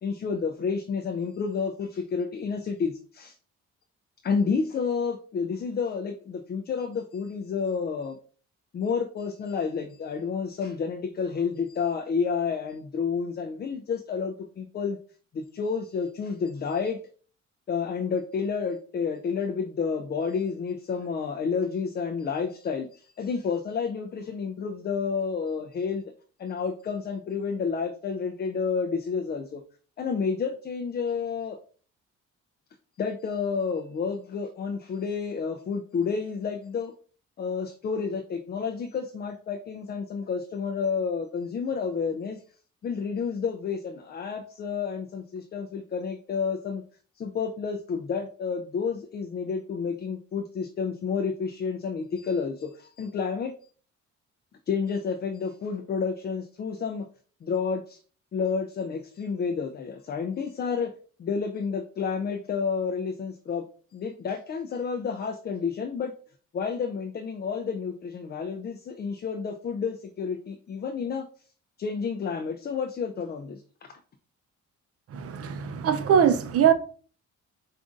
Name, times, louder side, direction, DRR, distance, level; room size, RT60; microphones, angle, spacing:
voice 1, 0.0-3.3 4.2-8.2 8.7-15.0 15.3-17.0 17.7-26.0 26.4-29.6 30.0-31.6 33.0-36.9 37.4-42.4 42.8-46.8 47.2-53.5 54.7-57.1 57.4-58.0 58.3-60.9 61.2-63.6 63.9-66.1 66.5-71.2 71.8-73.6, left 5 dB, 35° left, 0.4 m, -30 dB
voice 2, 75.1-76.7, right 8 dB, 50° right, 0.5 m, -22 dB
4.9 x 2.5 x 2.4 m
cardioid pair, 90°, 30 cm